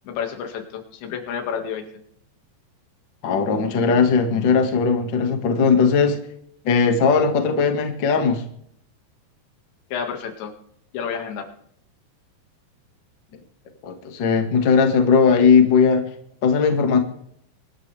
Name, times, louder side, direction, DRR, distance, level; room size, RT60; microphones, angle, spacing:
voice 1, 0.0-1.8 9.9-10.5 10.9-11.5, left 7 dB, 90° left, 4 dB, 4.3 m, -30 dB
voice 2, 3.2-6.2 6.6-8.4 13.8-16.0 16.4-17.0, left 5 dB, 45° left, 5 dB, 1.6 m, -18 dB
25.0 x 12.5 x 3.5 m, 0.67 s
omnidirectional pair, 5.0 m